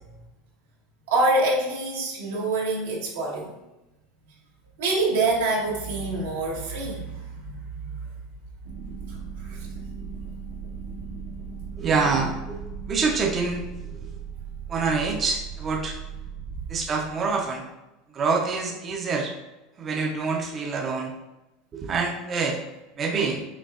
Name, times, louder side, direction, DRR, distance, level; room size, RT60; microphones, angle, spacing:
voice 1, 1.1-3.5 4.8-8.0 9.1-9.7, right 2 dB, 90° right, -3 dB, 1.2 m, -26 dB
sound 1, 8.6-17.3, right 6 dB, 70° right, 0.7 m, -37 dB
voice 2, 11.8-12.6 12.9-13.6 14.7-16.0 16.7-17.6 18.1-19.3 19.8-21.1 21.7-22.6 23.0-23.4, right 4 dB, 30° right, 1 dB, 0.5 m, -26 dB
5.2 x 3.3 x 2.4 m, 1.0 s
supercardioid pair, 120°, 0 cm